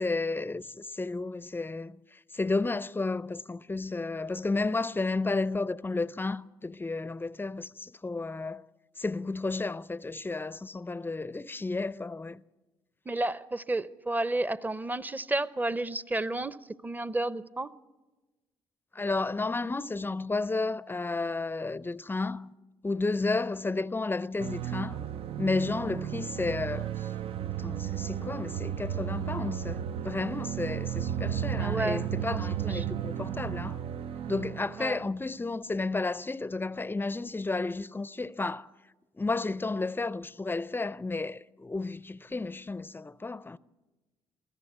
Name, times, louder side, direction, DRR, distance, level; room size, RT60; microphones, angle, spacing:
voice 1, 0.0-8.6 9.0-12.4 18.9-22.5 22.8-25.0 25.4-27.1 27.6-33.8 34.3-38.7 39.2-43.6, left 3 dB, 20° left, 0.6 m, -32 dB
voice 2, 13.1-16.6 16.8-17.7 31.6-32.9 34.8-35.0, right 2 dB, 15° right, 0.8 m, -32 dB
sound 1, 24.4-35.1, right 10 dB, 60° right, 0.6 m, -34 dB
23.5 x 14.5 x 8.1 m
supercardioid pair, 60°, 11 cm